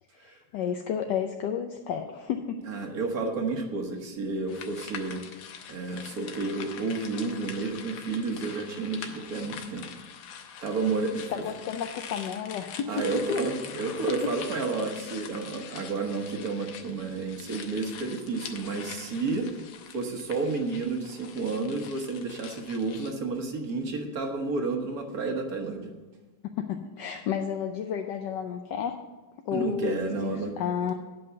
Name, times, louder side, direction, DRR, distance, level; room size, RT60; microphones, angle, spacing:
voice 1, 0.1-2.6 11.3-13.2 14.2-14.3 26.6-29.0 29.5-30.9, left 8 dB, 70° left, 5 dB, 1.1 m, -31 dB
voice 2, 2.7-5.2 5.7-9.8 10.6-11.4 12.9-19.5 19.9-25.9 29.5-30.5, right 3 dB, 50° right, 3 dB, 1.4 m, -31 dB
sound 1, 4.5-23.1, left 7 dB, 90° left, 1.8 m, -44 dB
9.5 x 5.5 x 8.0 m, 1.2 s
omnidirectional pair, 2.3 m